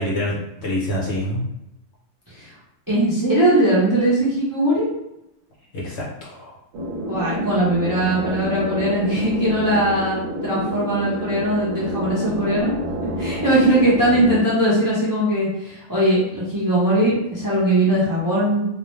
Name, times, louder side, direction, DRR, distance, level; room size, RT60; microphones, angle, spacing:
voice 1, 0.0-1.4 5.7-6.5, left 1 dB, 60° left, -5 dB, 1.0 m, -26 dB
voice 2, 2.9-4.9 7.1-12.7 13.2-18.7, right 1 dB, 20° right, -8 dB, 0.5 m, -20 dB
sound 1, 6.7-14.4, equal, 75° right, 0.9 m, -28 dB
2.4 x 2.1 x 3.0 m, 0.88 s
omnidirectional pair, 1.4 m